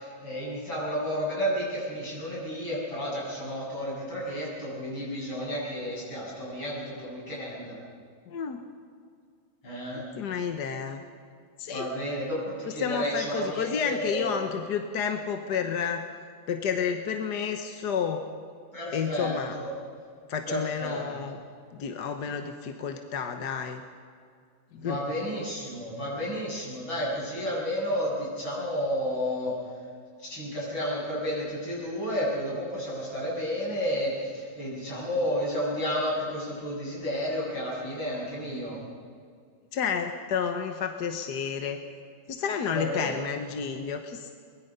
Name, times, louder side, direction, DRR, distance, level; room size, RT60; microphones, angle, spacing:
voice 1, 0.0-7.8 9.6-10.0 11.7-14.3 18.7-19.7 20.5-21.0 24.8-29.5 30.2-38.8 42.7-43.2, equal, 75° left, -5 dB, 8.7 m, -31 dB
voice 2, 8.3-8.6 10.0-11.0 11.6-11.9 12.8-16.0 16.5-18.2 18.9-19.6 20.3-21.4 21.7-23.8 24.7-25.0 39.7-41.8 42.3-44.3, left 6 dB, 60° left, 5 dB, 1.6 m, -30 dB
23.5 x 21.0 x 5.5 m, 2.2 s
omnidirectional pair, 2.2 m